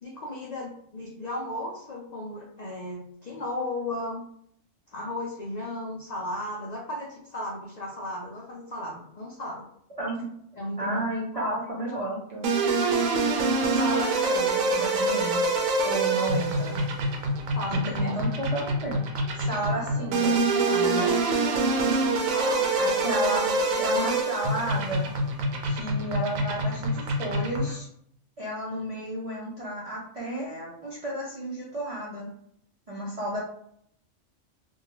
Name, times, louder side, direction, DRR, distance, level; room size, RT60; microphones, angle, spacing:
voice 1, 0.0-4.2 4.9-9.7 10.6-11.1 11.3-11.6 11.9-12.1 17.5-18.1 21.8-24.0, left 1 dB, 75° left, -3 dB, 0.3 m, -35 dB
voice 2, 10.0-10.3 10.8-12.5 13.7-15.4 15.8-16.8 17.7-19.0 19.3-20.4 20.7-21.1 22.8-23.4 23.8-25.1 25.7-27.9 28.4-32.3 32.9-33.4, right 1 dB, 55° right, -6 dB, 0.4 m, -32 dB
sound 1, 12.4-27.8, right 2 dB, 85° right, 1.0 m, -25 dB
2.6 x 2.2 x 2.9 m, 0.70 s
omnidirectional pair, 1.4 m